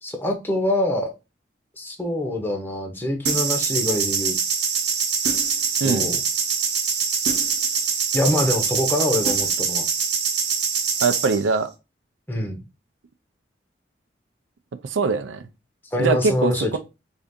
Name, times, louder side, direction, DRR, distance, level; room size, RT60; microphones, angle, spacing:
voice 1, 0.0-1.1 1.8-4.3 5.8-6.2 8.1-9.9 12.3-12.6 15.9-16.7, left 1 dB, 10° left, 0.7 m, -24 dB
sound 1, 3.3-11.4, right 6 dB, 60° right, 0.8 m, -24 dB
voice 2, 5.8-6.1 11.0-11.7 14.8-15.4 16.0-16.8, right 4 dB, 85° right, 0.4 m, -22 dB
3.5 x 2.7 x 3.5 m
head